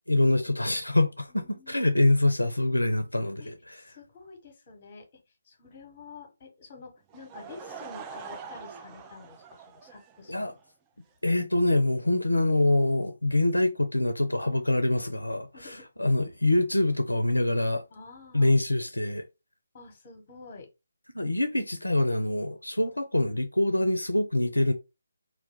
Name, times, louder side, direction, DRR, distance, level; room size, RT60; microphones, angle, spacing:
voice 1, 0.1-3.8 10.3-10.5 11.2-17.8 18.3-19.3 21.1-24.7, left 2 dB, 90° left, 0.4 m, -25 dB
voice 2, 1.3-2.0 3.4-10.5 15.5-15.9 17.9-18.6 19.7-20.7 22.8-23.0, left 4 dB, 35° left, 1.0 m, -49 dB
Laughter / Crowd, 7.1-10.6, right 6 dB, 15° right, 0.3 m, -44 dB
2.4 x 2.2 x 3.5 m
figure-of-eight pair, 150°, 0 cm